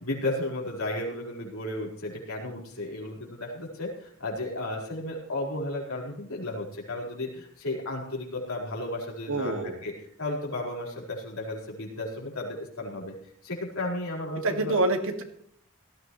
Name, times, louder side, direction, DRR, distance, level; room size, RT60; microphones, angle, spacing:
voice 1, 0.0-9.5 9.8-9.9 10.2-13.1 13.4-14.7, left 1 dB, 70° left, -2 dB, 4.6 m, -34 dB
voice 2, 9.3-9.8 14.4-15.2, right 2 dB, 65° right, 5 dB, 2.0 m, -26 dB
18.5 x 14.0 x 3.1 m, 0.64 s
head